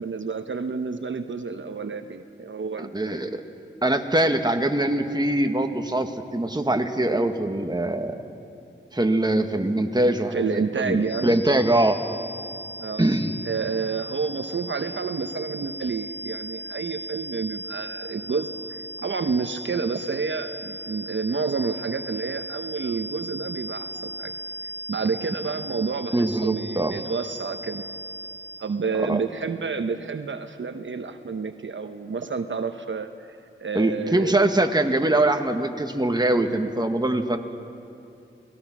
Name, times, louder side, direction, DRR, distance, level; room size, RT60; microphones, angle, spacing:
voice 1, 0.0-3.2 10.3-11.4 12.8-13.1 13.5-24.3 24.9-27.8 28.6-34.4, right 5 dB, 65° right, 8 dB, 0.9 m, -29 dB
voice 2, 2.8-3.4 3.8-8.2 8.9-12.0 13.0-13.3 26.1-26.9 29.0-29.2 33.7-37.4, right 1 dB, 20° right, 5 dB, 1.7 m, -23 dB
sound 1, 11.0-28.8, right 1 dB, 55° left, 1.0 m, -37 dB
29.0 x 19.5 x 6.1 m, 2.6 s
wide cardioid pair, 60°, 21 cm